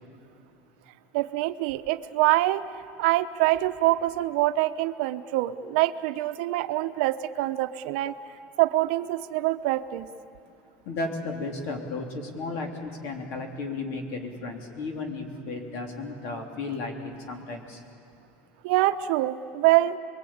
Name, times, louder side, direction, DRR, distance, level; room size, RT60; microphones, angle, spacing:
voice 1, 1.1-2.6 3.0-8.1 8.6-10.1 18.6-20.0, right 16 dB, 70° right, 9 dB, 0.8 m, -25 dB
voice 2, 10.8-17.8, left 3 dB, 55° left, 3 dB, 3.1 m, -34 dB
27.0 x 22.0 x 8.7 m, 2.4 s
cardioid pair, 170°, 5 cm